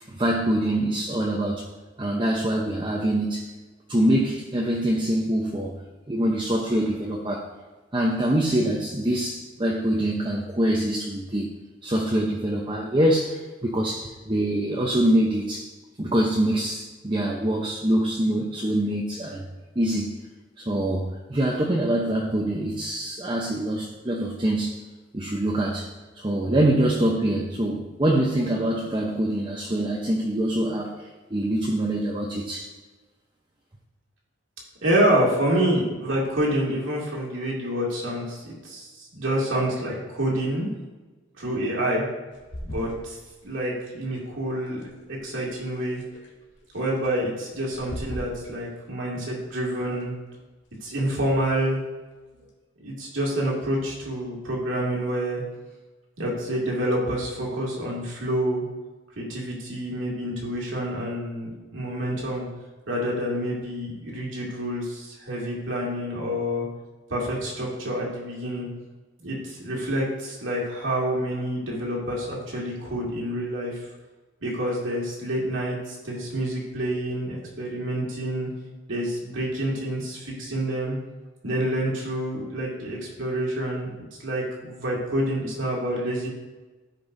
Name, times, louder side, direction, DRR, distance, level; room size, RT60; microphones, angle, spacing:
voice 1, 0.1-1.7 2.0-3.5 3.9-5.7 6.1-7.5 7.9-11.5 11.8-15.7 16.0-19.4 19.8-20.2 20.6-24.8 25.1-25.9 26.2-30.9 31.3-32.7, right 1 dB, 25° right, -2 dB, 0.8 m, -24 dB
voice 2, 34.8-40.7 41.4-42.0 42.6-43.2 43.4-44.8 45.1-46.0 46.7-50.1 50.8-51.8 52.8-55.4 56.2-58.6 59.2-62.5 62.9-66.7 67.1-68.7 69.2-73.7 74.4-78.5 78.9-81.0 81.4-83.9 84.2-86.3, right 1 dB, 80° right, -3 dB, 2.4 m, -27 dB
sound 1, 42.3-52.6, equal, 70° left, 1.9 m, -44 dB
14.5 x 5.4 x 2.7 m, 1.2 s
head